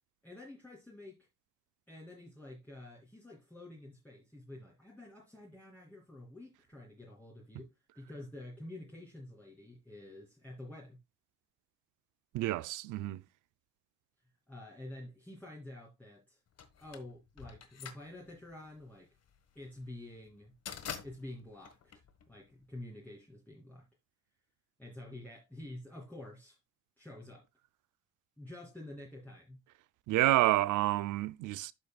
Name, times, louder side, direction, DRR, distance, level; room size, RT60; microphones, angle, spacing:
voice 1, 0.2-1.3 1.9-11.0 14.5-16.4 16.8-19.1 19.5-20.5 21.0-21.8 22.3-23.9 24.8-26.6 27.0-27.4 28.4-29.6, left 1 dB, 5° left, 2.6 m, -49 dB
voice 2, 12.3-13.2 30.1-31.7, right 16 dB, 80° right, 0.5 m, -29 dB
sound 1, 16.6-22.7, left 7 dB, 55° left, 1.5 m, -47 dB
12.5 x 5.1 x 2.3 m
cardioid pair, 90°, 30 cm